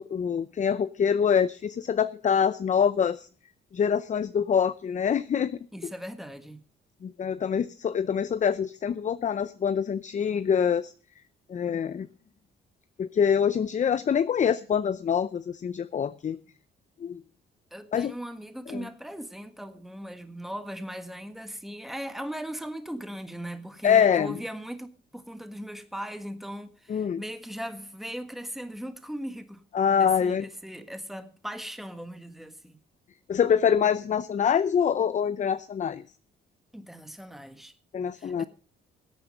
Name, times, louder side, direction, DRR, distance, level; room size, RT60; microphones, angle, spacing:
voice 1, 0.0-3.3 3.7-5.6 7.0-10.9 11.5-12.1 13.0-16.4 17.0-17.2 17.9-18.1 18.7-18.9 23.8-24.3 26.9-27.2 29.7-30.5 33.3-36.0 37.9-38.4, left 7 dB, 40° left, 0.6 m, -25 dB
voice 2, 5.7-6.6 17.7-29.6 30.0-32.8 36.7-37.7 38.1-38.5, equal, ahead, 1.5 m, -38 dB
17.0 x 8.7 x 5.4 m
cardioid pair, 90°, 20 cm